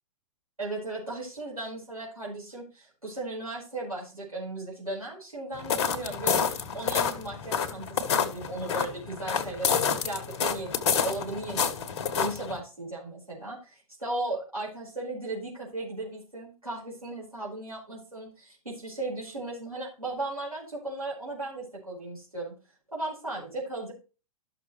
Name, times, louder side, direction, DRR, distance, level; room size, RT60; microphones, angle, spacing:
voice 1, 0.6-11.9 12.2-22.5 22.9-23.9, right 2 dB, 90° right, -6 dB, 5.3 m, -36 dB
sound 1, 5.5-12.6, left 7 dB, 50° left, 1.2 m, -28 dB
12.5 x 6.4 x 3.2 m, 0.32 s
figure-of-eight pair, 110°, 18 cm